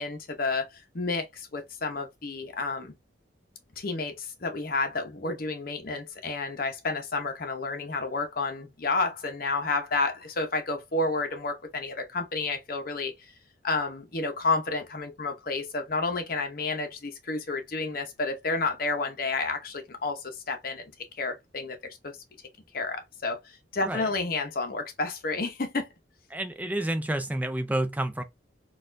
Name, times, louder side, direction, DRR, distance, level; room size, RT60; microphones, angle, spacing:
voice 1, 0.0-2.9 3.8-13.1 13.6-20.9 21.2-22.2 22.7-25.9, left 3 dB, 50° left, 0.8 m, -30 dB
voice 2, 26.3-28.2, right 1 dB, 10° right, 0.4 m, -29 dB
4.0 x 2.4 x 2.6 m
head